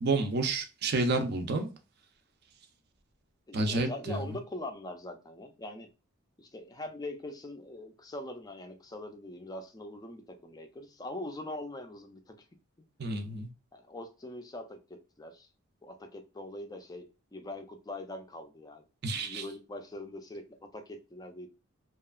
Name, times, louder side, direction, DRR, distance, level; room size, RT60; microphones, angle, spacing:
voice 1, 0.0-1.7 3.5-4.3 13.0-13.5 19.0-19.4, right 3 dB, 50° right, 0.5 m, -30 dB
voice 2, 3.5-5.9 6.4-12.4 13.7-15.5 15.8-21.5, left 1 dB, 20° left, 0.4 m, -42 dB
2.8 x 2.3 x 2.2 m
head